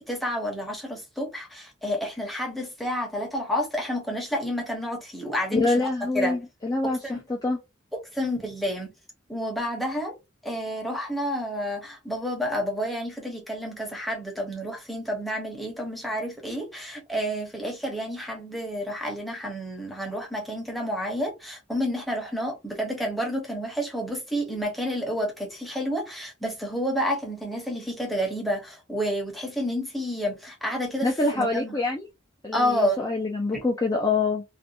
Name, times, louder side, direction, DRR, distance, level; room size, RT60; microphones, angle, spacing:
voice 1, 0.1-5.9 6.1-6.4 6.8-7.2 8.1-8.9 9.3-10.1 10.4-31.8 32.5-33.0, equal, ahead, 0.7 m, -30 dB
voice 2, 5.5-7.0 7.3-7.6 31.0-32.1 32.4-34.4, left 3 dB, 20° left, 0.4 m, -25 dB
2.5 x 2.2 x 2.7 m
head